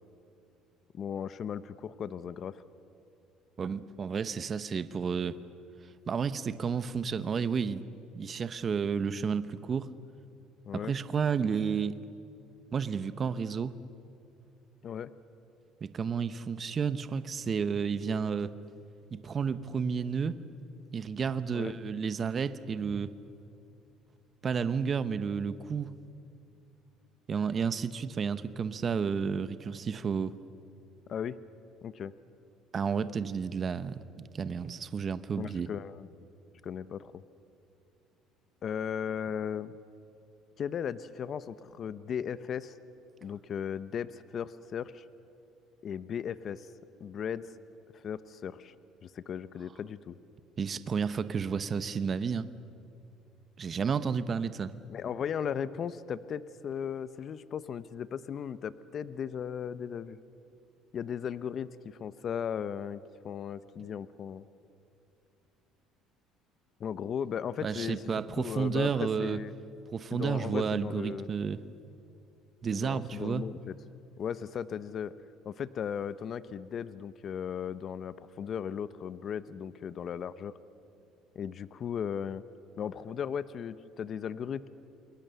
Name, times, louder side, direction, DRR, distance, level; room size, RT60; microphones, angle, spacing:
voice 1, 0.9-2.6 10.6-10.9 14.8-15.1 21.5-21.8 31.1-31.4 31.8-32.1 35.3-36.1 36.6-37.2 38.6-39.8 40.6-42.8 43.2-45.0 45.8-46.7 47.0-47.5 47.9-48.7 49.0-50.2 54.9-60.2 60.9-64.4 66.8-68.0 68.4-69.5 70.1-71.3 72.7-73.7 74.2-75.1 75.4-80.5 81.3-82.4 82.8-84.7, left 8 dB, 45° left, 15 dB, 0.8 m, -36 dB
voice 2, 3.6-5.4 6.1-7.8 8.1-9.9 10.7-12.0 12.7-13.8 15.8-18.5 19.1-20.4 20.9-23.1 24.4-26.0 27.3-30.3 32.7-35.7 50.6-52.5 53.6-54.7 67.6-69.4 69.9-71.6 72.6-73.4, right 6 dB, 35° right, 13 dB, 0.9 m, -31 dB
28.5 x 22.0 x 7.0 m, 2.6 s
cardioid pair, 105°, 0 cm